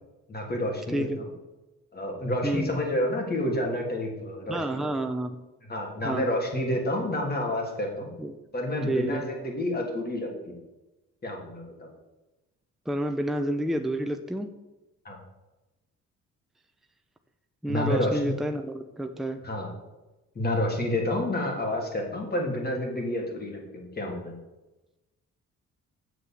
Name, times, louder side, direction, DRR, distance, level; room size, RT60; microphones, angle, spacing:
voice 1, 0.3-1.1 1.9-4.6 5.7-8.1 8.5-10.5 11.2-11.9 15.0-15.2 17.7-18.3 19.4-19.7 20.3-24.3, left 1 dB, 30° left, 1 dB, 3.2 m, -29 dB
voice 2, 0.9-1.2 2.4-2.7 4.5-5.4 6.0-6.3 8.2-8.4 8.9-9.2 12.9-14.5 17.6-19.4, right 1 dB, ahead, 6 dB, 0.7 m, -29 dB
7.8 x 6.7 x 7.5 m, 1.0 s
cardioid pair, 90°, 30 cm